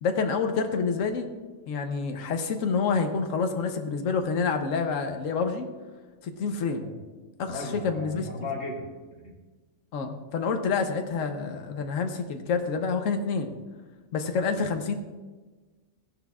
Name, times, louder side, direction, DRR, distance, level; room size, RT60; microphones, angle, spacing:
voice 1, 0.0-1.3 1.7-5.7 6.2-6.8 7.4-8.3 9.9-13.5 14.1-14.9, left 5 dB, 75° left, 5 dB, 1.2 m, -28 dB
voice 2, 7.5-8.8 9.1-9.3, left 2 dB, 55° left, -3 dB, 2.5 m, -36 dB
15.5 x 10.5 x 2.4 m, 1.3 s
omnidirectional pair, 1.4 m